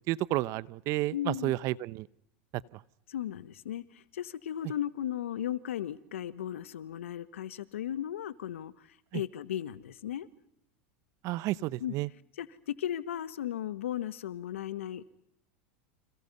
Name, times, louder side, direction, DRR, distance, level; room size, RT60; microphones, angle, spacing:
voice 1, 0.1-2.1 2.7-2.8 9.1-9.2 11.2-12.1, right 17 dB, 50° right, 0.9 m, -31 dB
voice 2, 1.1-1.5 3.1-10.3 11.8-11.9 12.4-15.0, left 11 dB, 85° left, 1.6 m, -36 dB
30.0 x 27.0 x 5.6 m
hypercardioid pair, 105°, 7 cm